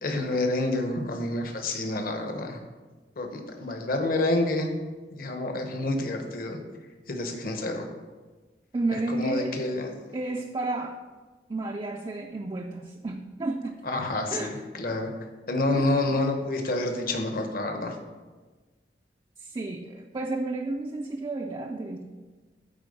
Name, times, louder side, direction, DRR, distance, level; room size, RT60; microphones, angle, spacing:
voice 1, 0.0-2.6 3.2-4.7 5.1-6.6 7.1-7.9 8.9-9.9 13.8-15.1 15.5-18.0, left 2 dB, 55° left, 4 dB, 1.0 m, -28 dB
voice 2, 8.7-9.6 10.1-11.0 11.5-13.8 14.3-14.6 15.7-16.0 19.4-22.0, right 2 dB, 25° right, 2 dB, 0.4 m, -32 dB
9.0 x 4.2 x 5.3 m, 1.3 s
head